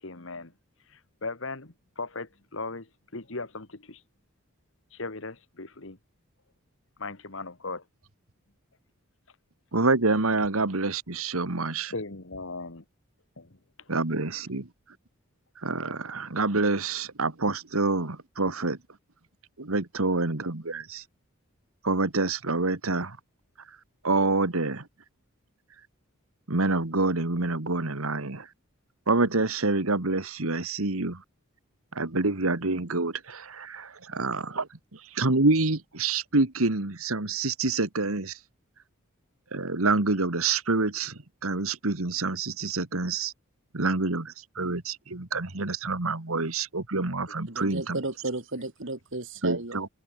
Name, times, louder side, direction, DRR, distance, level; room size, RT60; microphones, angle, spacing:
voice 1, 0.0-0.5 0.9-4.0 4.9-6.0 7.0-7.8 11.9-12.8 13.4-13.6 14.5-14.6 47.3-47.4, left 3 dB, 65° left, 1.8 m, -38 dB
voice 2, 9.7-11.9 13.9-14.7 15.6-18.8 19.6-21.0 21.8-23.2 24.0-24.9 26.5-28.5 29.1-31.2 32.0-34.7 35.1-38.3 39.5-43.3 43.7-48.0 49.4-49.9, right 3 dB, 80° right, 1.9 m, -27 dB
voice 3, 47.5-49.9, right 2 dB, 60° right, 2.0 m, -34 dB
head